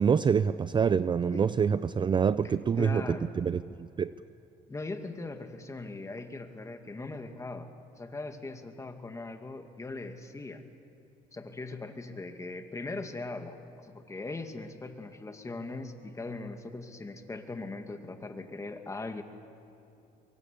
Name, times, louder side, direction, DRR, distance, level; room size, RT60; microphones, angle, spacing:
voice 1, 0.0-3.0 3.4-4.1, right 6 dB, 30° right, 15 dB, 0.5 m, -26 dB
voice 2, 2.8-3.3 4.7-7.7 8.0-10.6 11.3-19.2, left 3 dB, 20° left, 6 dB, 2.2 m, -40 dB
23.5 x 23.0 x 8.5 m, 2.8 s
cardioid pair, 110°, 17 cm